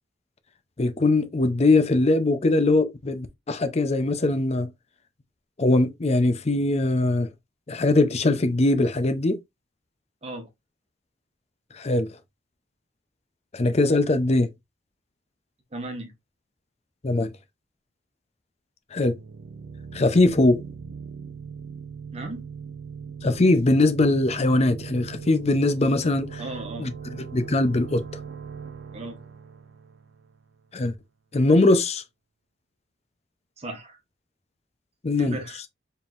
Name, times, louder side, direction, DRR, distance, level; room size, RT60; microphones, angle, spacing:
voice 1, 0.8-4.7 5.6-7.3 7.7-9.4 11.8-12.1 13.5-14.5 17.0-17.3 18.9-19.2 19.9-20.6 23.2-26.4 26.8-26.9 27.2-28.0 30.7-30.9 31.3-32.0 35.0-35.4, left 2 dB, 35° left, 0.5 m, -21 dB
voice 2, 15.7-16.1 22.1-22.4 26.4-26.9 28.9-29.2 33.6-34.0 35.2-35.6, right 2 dB, 35° right, 1.2 m, -35 dB
sound 1, 19.1-30.7, right 6 dB, 70° right, 0.6 m, -40 dB
4.3 x 3.6 x 2.4 m
head